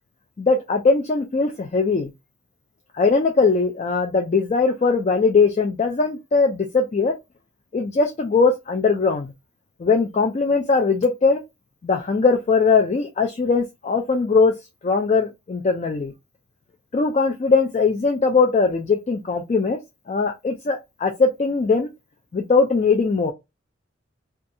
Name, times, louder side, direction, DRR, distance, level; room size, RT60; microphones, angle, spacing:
voice 1, 0.4-2.1 2.9-7.1 7.7-9.3 9.8-11.4 11.8-14.5 14.8-16.1 16.9-19.8 20.1-21.9 22.3-23.3, left 4 dB, 35° left, 0.3 m, -20 dB
2.6 x 2.3 x 2.6 m
head